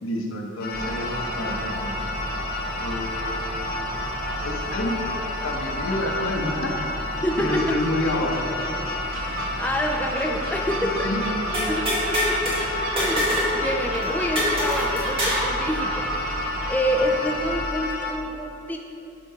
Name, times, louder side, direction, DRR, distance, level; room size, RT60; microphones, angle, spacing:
voice 1, 0.0-2.1 2.8-3.6 4.4-5.0 5.4-6.7 7.4-8.5 10.7-11.2, left 1 dB, 85° left, 0 dB, 1.1 m, -29 dB
sound 1, 0.6-18.1, left 3 dB, 45° left, 0.8 m, -31 dB
Gull seagull, 0.7-17.6, right 2 dB, 75° right, 0.9 m, -32 dB
voice 2, 7.2-7.8 9.1-11.1 11.7-16.1 16.6-18.8, equal, 10° left, 1 dB, 0.3 m, -28 dB
sound 2, 11.5-12.6 13.0-13.5 13.8-13.9 14.4-15.5, equal, 25° right, 1.6 m, -24 dB
8.8 x 3.7 x 5.7 m, 2.8 s
head